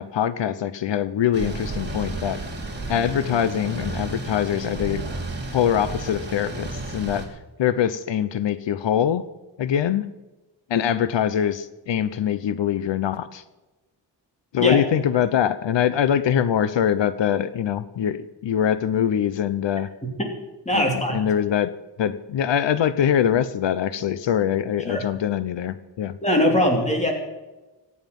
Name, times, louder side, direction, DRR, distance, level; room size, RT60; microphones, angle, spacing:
voice 1, 0.0-2.4 2.9-5.0 5.5-9.2 9.6-10.0 10.7-13.4 14.5-19.9 20.7-21.7 22.0-26.2, left 9 dB, 85° left, 14 dB, 0.8 m, -23 dB
sound 1, 1.3-7.3, right 2 dB, 25° right, 3.3 m, -32 dB
voice 2, 20.6-21.2 24.9-25.0 26.2-27.1, equal, 15° left, 2 dB, 3.0 m, -21 dB
24.0 x 9.7 x 5.4 m, 1.1 s
wide cardioid pair, 180°, 43 cm